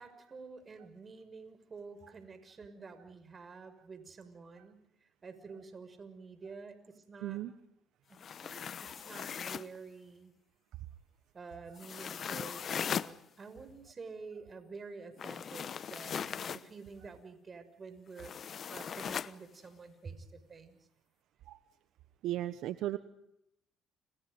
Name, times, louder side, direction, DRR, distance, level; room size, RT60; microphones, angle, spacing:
voice 1, 0.0-7.4 8.1-10.3 11.3-20.8, right 4 dB, 40° right, 10 dB, 6.3 m, -49 dB
voice 2, 7.2-7.5 21.5-21.6 22.2-23.0, right 14 dB, 75° right, 12 dB, 1.2 m, -35 dB
sound 1, 8.1-9.8 11.8-13.1 15.2-16.7 18.2-19.3, left 7 dB, 50° left, 1.0 m, -39 dB
30.0 x 29.5 x 5.3 m, 0.80 s
supercardioid pair, 65°, 0 cm